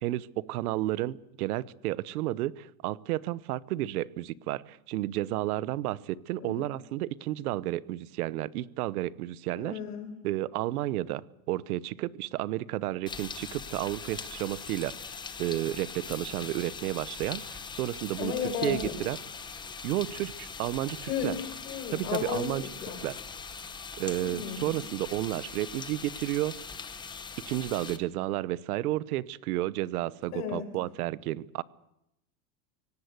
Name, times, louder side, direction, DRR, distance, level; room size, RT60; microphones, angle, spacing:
voice 1, 0.0-9.8 10.2-11.2 11.5-18.3 18.6-19.2 19.8-21.3 21.9-22.7 23.0-23.2 24.0-26.6 27.4-31.6, right 15 dB, 75° right, 19 dB, 1.0 m, -32 dB
voice 2, 9.5-10.1 18.2-19.0 21.0-21.4 21.6-23.0 24.2-24.8 30.3-30.7, left 7 dB, 80° left, 6 dB, 6.4 m, -34 dB
sound 1, 13.1-28.0, left 5 dB, 10° left, 0.9 m, -41 dB
24.5 x 18.0 x 8.2 m, 0.84 s
supercardioid pair, 165°, 45 cm